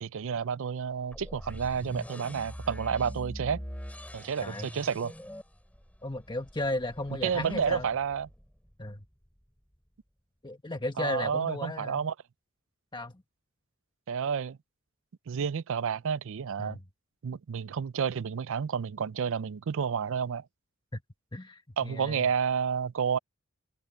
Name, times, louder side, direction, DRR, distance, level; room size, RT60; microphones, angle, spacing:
voice 1, 0.0-3.6 4.1-5.1 7.2-8.3 11.0-12.1 14.1-14.6 15.3-16.8 17.2-20.4 21.8-23.2, right 7 dB, 65° right, 0.4 m, -30 dB
sound 1, 1.1-9.0, equal, 5° left, 7.2 m, -43 dB
voice 2, 6.0-7.9 8.8-9.0 10.4-12.1 12.9-13.1 16.6-16.8 20.9-21.0 21.3-22.3, left 1 dB, 20° left, 1.5 m, -35 dB
head